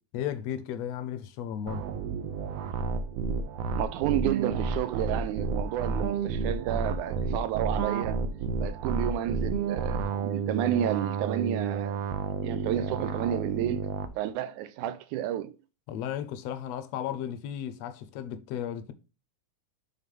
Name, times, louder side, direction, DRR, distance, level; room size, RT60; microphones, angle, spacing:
voice 1, 0.1-1.9 15.9-18.9, left 10 dB, 75° left, 1.7 m, -34 dB
sound 1, 1.7-14.1, right 5 dB, 75° right, 1.6 m, -31 dB
voice 2, 3.8-8.2 8.6-12.0 12.4-13.8 14.2-15.5, right 11 dB, 90° right, 2.1 m, -31 dB
7.3 x 4.0 x 5.3 m
omnidirectional pair, 3.4 m